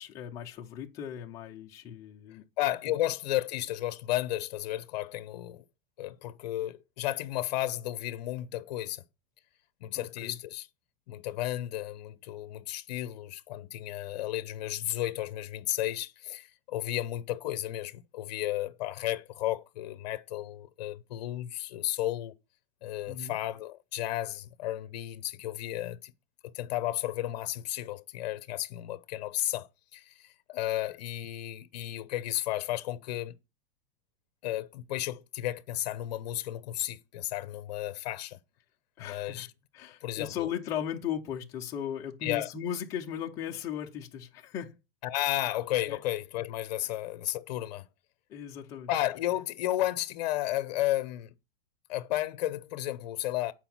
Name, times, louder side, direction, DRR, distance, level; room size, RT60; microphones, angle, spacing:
voice 1, 0.0-2.4 9.9-10.4 23.1-23.4 39.0-39.5 39.7-44.8 45.9-46.0 48.3-48.9, left 9 dB, 10° left, 0.4 m, -37 dB
voice 2, 2.6-5.6 6.0-9.0 9.8-10.7 11.1-22.3 22.8-26.1 26.5-33.3 34.4-38.4 39.0-39.5 40.0-40.5 42.2-42.5 45.0-47.9 48.9-51.3 51.9-53.5, left 14 dB, 45° left, 0.8 m, -33 dB
8.9 x 4.8 x 5.9 m
supercardioid pair, 175°, 30 cm